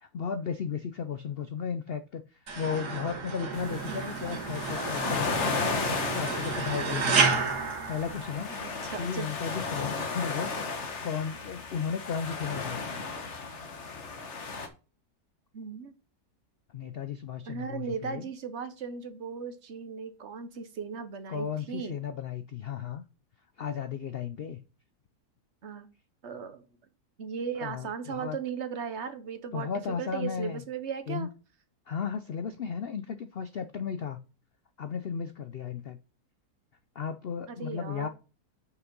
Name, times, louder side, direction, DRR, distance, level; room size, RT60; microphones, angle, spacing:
voice 1, 0.0-7.4 7.9-8.6 9.0-13.0 16.7-18.3 21.3-23.0 23.6-24.6 27.6-28.4 29.5-30.6 31.1-31.3 31.9-34.2 34.8-36.0 36.9-38.1, left 7 dB, 70° left, 10 dB, 0.5 m, -35 dB
sound 1, 2.5-8.8, right 5 dB, 80° right, 2.0 m, -31 dB
sound 2, 3.5-14.7, left 4 dB, 50° left, 1.4 m, -35 dB
voice 2, 8.6-9.3 15.5-15.9 17.5-22.0 25.6-25.9 26.2-26.6 27.2-29.7 30.0-31.3 37.5-38.1, right 6 dB, 50° right, 10 dB, 1.1 m, -37 dB
6.4 x 5.9 x 5.3 m, 0.34 s
omnidirectional pair, 1.7 m